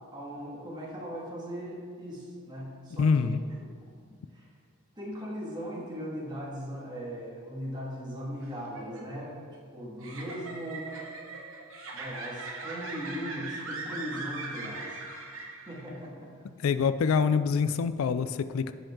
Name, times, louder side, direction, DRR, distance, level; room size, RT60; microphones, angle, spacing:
voice 1, 0.1-3.4 4.3-4.5 5.0-9.4 9.7-10.9 11.9-15.0 15.7-16.5, equal, 20° right, -5 dB, 2.0 m, -39 dB
voice 2, 3.0-3.4 16.6-18.7, left 5 dB, 75° left, 12 dB, 0.4 m, -25 dB
sound 1, 8.4-16.0, right 3 dB, 70° right, 1.2 m, -40 dB
15.5 x 5.2 x 3.7 m, 2.1 s
head